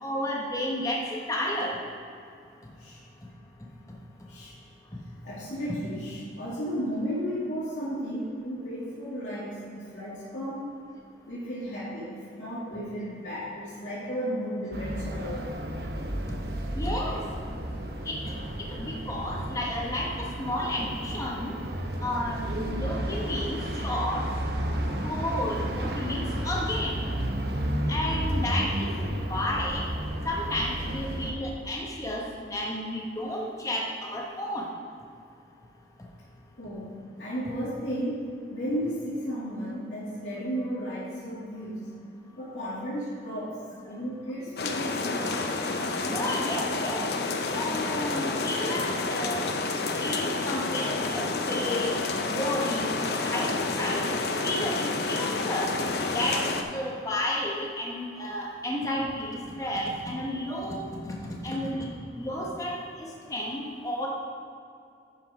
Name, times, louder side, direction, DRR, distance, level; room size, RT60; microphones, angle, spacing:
voice 1, 0.0-1.8 16.8-17.2 18.1-18.3 18.6-20.1 20.4-21.5 22.0-23.6 23.8-24.2 25.0-26.9 27.9-29.8 30.2-34.7 46.1-47.0 47.5-48.8 49.1-49.5 50.0-51.9 52.3-52.9 53.2-53.5 53.8-54.1 54.4-55.7 56.1-56.4 56.7-61.1 61.4-61.9 62.1-62.8 63.3-64.1, left 1 dB, 20° left, -2 dB, 1.1 m, -31 dB
voice 2, 5.2-10.7 11.3-15.7 36.6-36.9 37.2-41.9 42.4-43.6 43.8-45.4, equal, 80° left, -10 dB, 2.1 m, -34 dB
sound 1, 14.7-31.3, right 1 dB, 55° right, 0.9 m, -32 dB
sound 2, 44.6-56.6, left 3 dB, 60° left, 0.7 m, -29 dB
11.0 x 5.7 x 4.9 m, 2.5 s
head